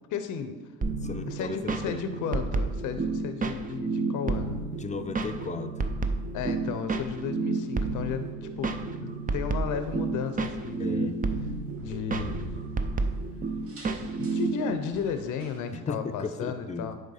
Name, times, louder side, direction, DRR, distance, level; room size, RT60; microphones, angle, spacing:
voice 1, 0.1-0.6 1.3-4.6 6.3-11.2 11.8-12.6 14.2-17.0, left 6 dB, 85° left, 9 dB, 0.6 m, -34 dB
sound 1, 0.8-14.7, right 3 dB, 30° right, 0.6 m, -31 dB
voice 2, 1.0-2.2 4.7-5.7 10.8-11.2 15.7-16.9, left 4 dB, 25° left, 8 dB, 0.6 m, -35 dB
sound 2, 4.6-15.8, right 1 dB, 45° right, 1.4 m, -49 dB
8.7 x 3.5 x 5.6 m, 1.3 s
cardioid pair, 90°, 30 cm